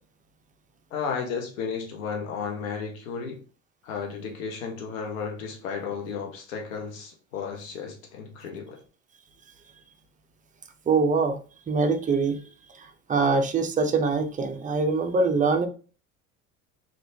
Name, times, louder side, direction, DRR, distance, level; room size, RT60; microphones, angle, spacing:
voice 1, 0.9-3.4 3.8-8.8, left 6 dB, 85° left, 1.0 m, -33 dB
voice 2, 10.9-11.4 11.7-12.4 12.7-15.7, right 4 dB, 20° right, 0.5 m, -24 dB
3.3 x 2.8 x 2.7 m
hypercardioid pair, 85°, 39 cm